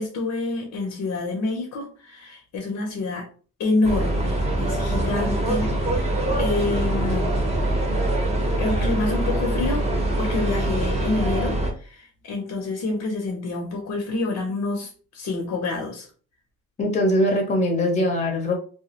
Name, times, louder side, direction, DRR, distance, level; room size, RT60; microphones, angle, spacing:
voice 1, 0.0-3.3 3.6-6.0 6.4-7.3 8.6-16.1, left 3 dB, 65° left, 1 dB, 0.7 m, -27 dB
sound 1, 3.8-11.7, right 1 dB, 20° right, 0.8 m, -24 dB
voice 2, 16.8-18.5, left 1 dB, 25° left, 1 dB, 0.7 m, -21 dB
2.2 x 2.0 x 2.8 m, 0.40 s
cardioid pair, 90°, 30 cm